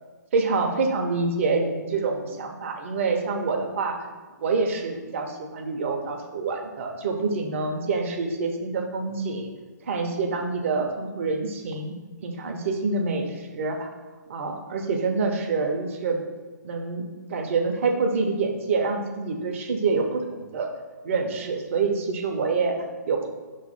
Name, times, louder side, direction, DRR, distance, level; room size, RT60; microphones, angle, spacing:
voice 1, 0.3-4.0 4.4-9.5 9.8-11.9 12.2-13.9 14.3-16.2 16.6-20.7 21.0-23.3, right 4 dB, 45° right, 4 dB, 0.8 m, -26 dB
6.1 x 3.2 x 5.5 m, 1.4 s
figure-of-eight pair, 125°, 10 cm